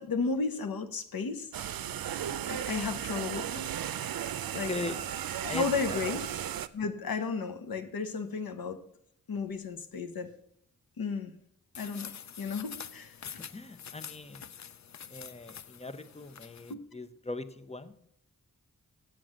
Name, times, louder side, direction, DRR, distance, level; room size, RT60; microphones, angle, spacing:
voice 1, 0.0-1.5 2.5-3.7 4.5-4.7 5.4-6.2 6.7-8.8 9.3-10.3 11.0-11.3 11.8-12.1 12.4-13.4 16.7-16.8, left 4 dB, 90° left, 9 dB, 1.0 m, -33 dB
sound 1, 1.5-6.7, right 10 dB, 85° right, 0.5 m, -35 dB
voice 2, 4.7-5.0 5.5-6.2 13.4-14.5 15.1-18.1, left 2 dB, 20° left, 11 dB, 0.7 m, -40 dB
sound 2, 11.7-16.7, left 8 dB, 55° left, 0.5 m, -46 dB
7.6 x 7.6 x 6.3 m, 0.70 s
cardioid pair, 65°, 34 cm